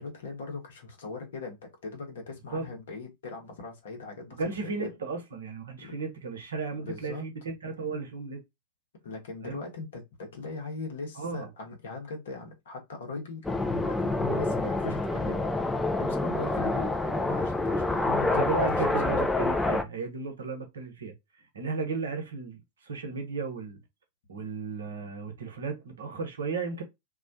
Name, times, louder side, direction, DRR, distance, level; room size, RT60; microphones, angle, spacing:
voice 1, 0.0-4.7 5.8-5.9 6.7-7.3 9.0-19.2, left 3 dB, 60° left, 0.9 m, -40 dB
voice 2, 4.4-8.4 9.4-9.6 11.2-11.5 18.2-21.1 21.5-23.8 24.3-26.8, right 4 dB, 70° right, 0.7 m, -34 dB
sound 1, 13.4-19.8, left 2 dB, 10° left, 0.4 m, -27 dB
2.3 x 2.1 x 2.6 m
figure-of-eight pair, 90°, 0 cm